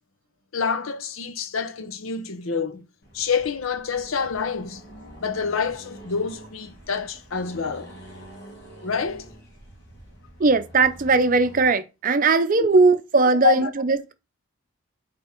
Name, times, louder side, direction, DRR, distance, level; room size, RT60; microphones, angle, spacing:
voice 1, 0.5-2.9 3.1-4.8 5.2-7.9 8.8-9.3 13.4-13.7, left 6 dB, 80° left, 0.8 m, -27 dB
Accelerating revving vroom, 3.0-11.7, right 1 dB, 55° left, 2.2 m, -46 dB
voice 2, 10.4-14.1, right 3 dB, 40° right, 0.6 m, -19 dB
8.0 x 3.5 x 4.4 m
head